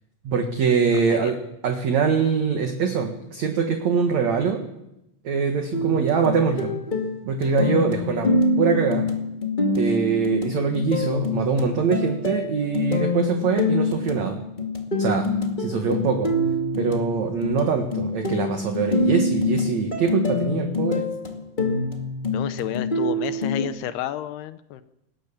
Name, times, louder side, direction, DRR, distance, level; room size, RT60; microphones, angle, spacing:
voice 1, 0.2-1.4 1.6-4.6 5.2-6.7 7.2-8.3 8.6-9.0 9.8-14.4 15.0-15.3 15.6-16.3 16.8-21.1, right 6 dB, 55° right, 4 dB, 2.4 m, -23 dB
sound 1, 5.7-23.7, left 2 dB, 35° left, 0.7 m, -25 dB
voice 2, 22.3-24.8, left 11 dB, 80° left, 12 dB, 2.8 m, -31 dB
19.5 x 18.5 x 7.2 m, 0.87 s
omnidirectional pair, 4.7 m